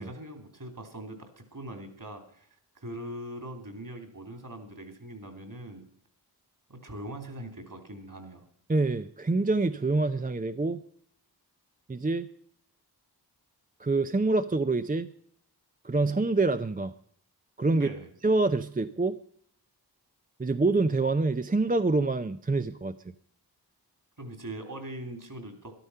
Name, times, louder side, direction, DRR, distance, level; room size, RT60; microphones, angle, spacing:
voice 1, 0.0-2.5 2.8-5.9 6.7-8.4 17.7-18.1 24.2-25.7, right 1 dB, 50° right, 7 dB, 3.0 m, -41 dB
voice 2, 8.7-10.8 11.9-12.3 13.8-15.1 15.8-16.9 17.6-17.9 18.2-19.2 20.4-22.9, right 3 dB, 20° right, 10 dB, 0.5 m, -26 dB
13.0 x 12.0 x 5.6 m, 0.63 s
wide cardioid pair, 65°, 42 cm